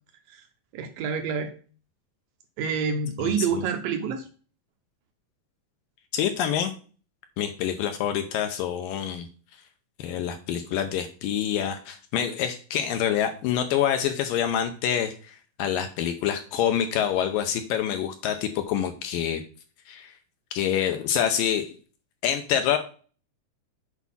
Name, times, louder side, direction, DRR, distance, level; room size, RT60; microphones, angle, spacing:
voice 1, 0.7-1.5 2.6-4.3, right 6 dB, 75° right, 5 dB, 2.2 m, -27 dB
voice 2, 6.1-6.7 7.4-9.3 10.0-19.4 19.9-20.1 20.5-21.7 22.2-22.8, left 9 dB, 80° left, 7 dB, 2.2 m, -26 dB
8.4 x 4.7 x 5.5 m, 0.39 s
omnidirectional pair, 4.5 m